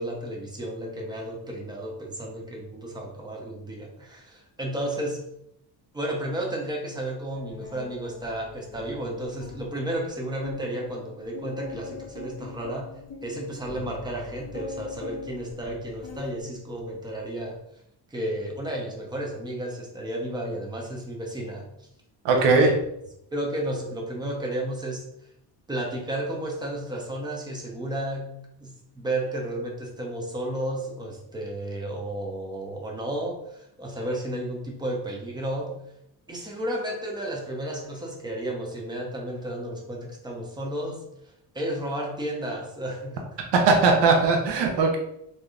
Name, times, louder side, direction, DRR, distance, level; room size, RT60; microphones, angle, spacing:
voice 1, 0.0-5.2 5.9-17.6 18.1-21.7 22.4-22.6 23.3-25.1 25.7-28.3 28.6-35.8 36.3-43.2, right 1 dB, 10° right, 0 dB, 0.6 m, -32 dB
sound 1, 7.3-9.7 10.1-10.2 10.4-16.4 16.8-17.2, left 4 dB, 35° left, 0.7 m, -42 dB
voice 2, 22.2-22.7 43.5-45.0, right 4 dB, 70° right, 2 dB, 0.7 m, -19 dB
3.2 x 2.7 x 2.3 m, 0.78 s
cardioid pair, 115°, 43 cm